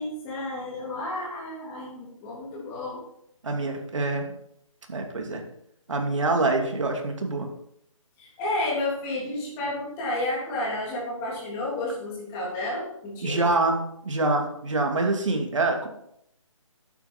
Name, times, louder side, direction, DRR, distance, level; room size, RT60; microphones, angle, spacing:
voice 1, 0.0-3.0 8.2-13.4, left 2 dB, 15° left, -5 dB, 3.3 m, -31 dB
voice 2, 3.4-4.3 4.9-5.4 5.9-7.5 13.2-15.9, right 2 dB, 65° right, 3 dB, 2.7 m, -25 dB
11.5 x 9.1 x 4.4 m, 0.74 s
hypercardioid pair, 170°, 17 cm